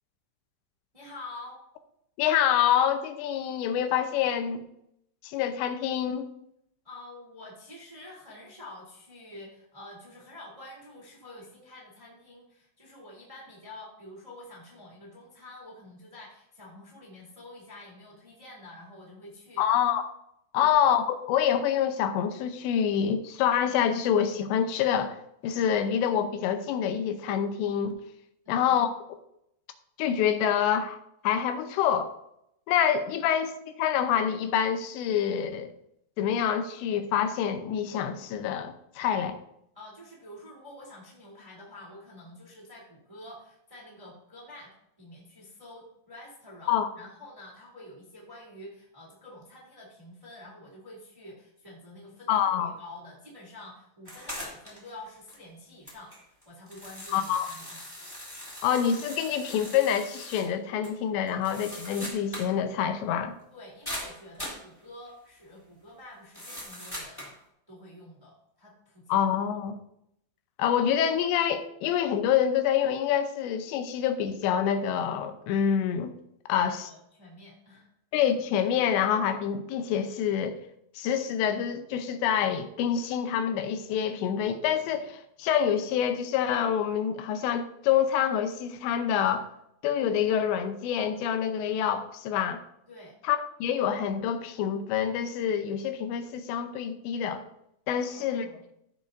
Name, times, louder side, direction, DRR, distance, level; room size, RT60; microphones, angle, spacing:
voice 1, 0.9-1.6 6.8-19.6 20.5-20.8 28.4-28.8 33.2-33.3 39.7-56.1 56.4-57.9 63.5-67.3 67.7-69.3 76.5-77.9 92.9-93.1 98.0-98.6, left 1 dB, 10° right, -4 dB, 1.5 m, -48 dB
voice 2, 2.2-4.6 5.2-6.3 19.6-20.1 20.5-25.2 25.4-28.0 28.5-28.9 30.0-32.1 32.7-35.7 36.2-39.4 46.7-46.9 52.3-52.7 57.1-57.5 58.6-63.3 69.1-69.8 70.6-76.1 76.5-76.9 78.1-80.6 81.0-89.5 89.8-92.6 93.2-97.4 97.9-98.5, left 9 dB, 90° left, 8 dB, 3.0 m, -26 dB
sound 1, 54.0-54.9 55.3-55.4 55.9-60.5 60.8-60.9 61.3-62.6 62.8-62.9 63.8-64.7 66.3-67.4, equal, 10° left, 1.5 m, -41 dB
15.5 x 6.6 x 2.6 m, 0.77 s
omnidirectional pair, 4.9 m